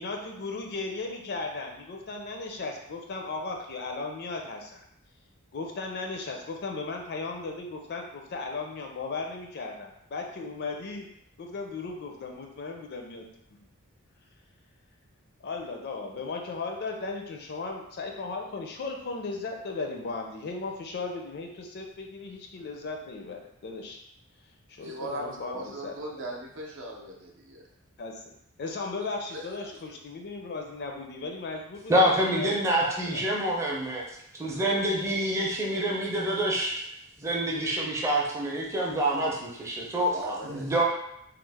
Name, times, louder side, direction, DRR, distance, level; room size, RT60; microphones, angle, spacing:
voice 1, 0.0-4.8 5.5-11.1 11.4-13.2 15.4-24.0 24.7-26.2 28.0-28.2 28.6-32.0 32.4-32.5 32.8-33.2, left 3 dB, 45° left, 2 dB, 0.4 m, -36 dB
voice 2, 24.8-27.6 29.3-29.5 40.1-40.7, right 1 dB, 60° right, 0 dB, 0.5 m, -38 dB
voice 3, 31.9-34.0 34.4-36.7 37.2-40.8, right 1 dB, 15° right, -3 dB, 0.5 m, -26 dB
3.0 x 2.0 x 3.3 m, 0.76 s
head